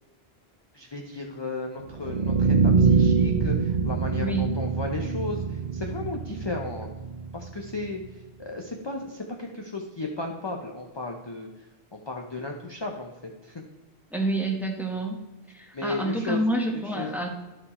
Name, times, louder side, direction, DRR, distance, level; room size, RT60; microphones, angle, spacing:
voice 1, 0.7-6.9 7.3-8.0 8.4-11.5 11.9-13.6 15.7-16.4 16.7-17.3, left 2 dB, 30° left, 2 dB, 0.7 m, -34 dB
sound 1, 1.9-7.9, right 5 dB, 55° right, 0.5 m, -24 dB
voice 2, 4.2-4.5 14.1-15.2 15.5-17.3, right 1 dB, ahead, 1 dB, 1.1 m, -28 dB
12.0 x 4.6 x 4.3 m, 1.2 s
omnidirectional pair, 1.0 m